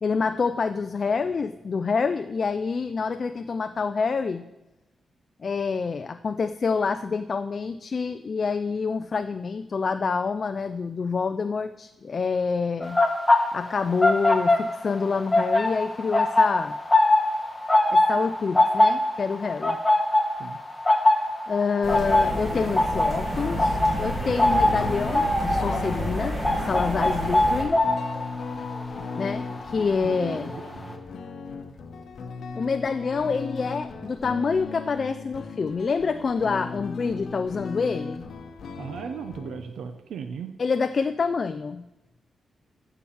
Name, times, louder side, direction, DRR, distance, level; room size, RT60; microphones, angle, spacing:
voice 1, 0.0-4.5 5.4-13.0 13.5-16.8 17.9-19.8 21.5-27.8 29.1-30.5 32.5-38.2 40.6-41.8, left 5 dB, 40° left, 10 dB, 0.3 m, -27 dB
sound 1, 12.8-15.0 15.3-30.2 30.4-30.7, left 2 dB, 10° left, 1.1 m, -22 dB
sound 2, 21.8-27.6, equal, 15° right, 2.7 m, -30 dB
voice 2, 24.1-24.4 30.0-31.0 38.8-40.5, right 7 dB, 85° right, 7 dB, 0.7 m, -37 dB
sound 3, 24.5-39.6, left 4 dB, 60° left, 0.9 m, -37 dB
14.0 x 4.7 x 7.1 m, 0.99 s
wide cardioid pair, 170°, 0 cm